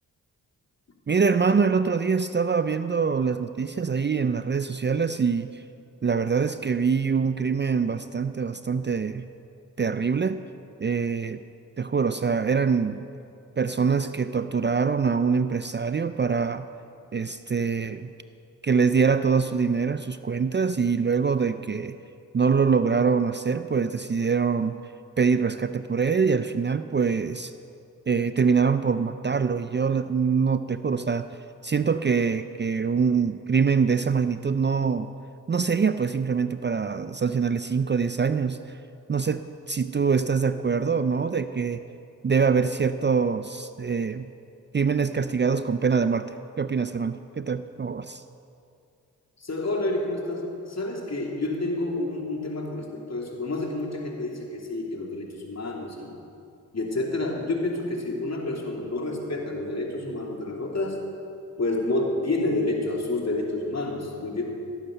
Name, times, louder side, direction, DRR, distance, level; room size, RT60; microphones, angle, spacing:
voice 1, 1.1-5.6 6.0-9.2 9.8-10.4 10.8-11.4 11.8-13.1 13.6-16.7 17.1-18.1 18.6-21.9 22.3-24.8 25.2-27.5 28.1-31.3 31.6-35.1 35.5-38.8 39.1-41.8 42.2-44.3 44.7-48.2, right 5 dB, 30° right, 12 dB, 0.5 m, -24 dB
voice 2, 49.4-50.4 50.7-56.1 56.7-61.0 61.6-64.4, left 2 dB, 45° left, -1 dB, 3.1 m, -29 dB
16.0 x 9.2 x 6.7 m, 2.5 s
supercardioid pair, 40°, 35 cm